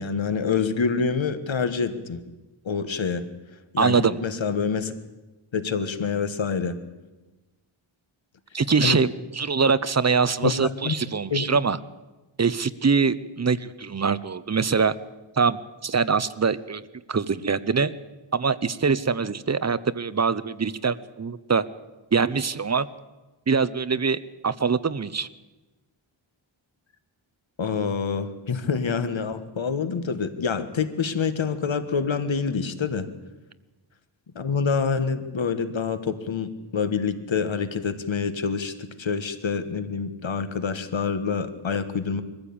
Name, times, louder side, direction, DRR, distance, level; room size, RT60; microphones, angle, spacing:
voice 1, 0.0-2.2 2.7-3.3 3.7-4.9 5.5-6.8 8.8-9.0 10.4-10.5 10.8-11.0 11.3-11.5 27.6-33.1 34.4-42.2, left 5 dB, 65° left, 10 dB, 1.6 m, -26 dB
voice 2, 3.8-4.2 8.5-9.1 9.3-11.8 12.4-15.0 15.4-16.8 17.1-17.9 18.3-21.6 22.1-22.9 23.5-24.2 24.4-25.3, right 5 dB, 35° right, 15 dB, 0.8 m, -23 dB
22.0 x 15.0 x 8.7 m, 1.1 s
wide cardioid pair, 120°, 48 cm